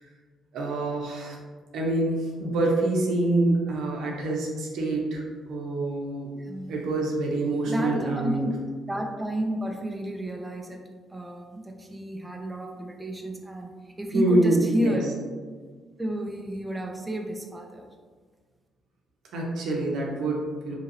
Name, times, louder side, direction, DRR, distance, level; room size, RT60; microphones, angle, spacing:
voice 1, 0.5-1.4 1.7-6.3 6.7-8.5 14.1-15.0 19.3-20.8, right 2 dB, 80° right, -1 dB, 0.6 m, -26 dB
voice 2, 6.4-6.9 7.7-8.6 8.9-10.8 11.1-15.1 16.0-17.9, equal, 15° right, 2 dB, 0.3 m, -31 dB
2.9 x 2.7 x 2.6 m, 1.5 s
cardioid pair, 90°, 0 cm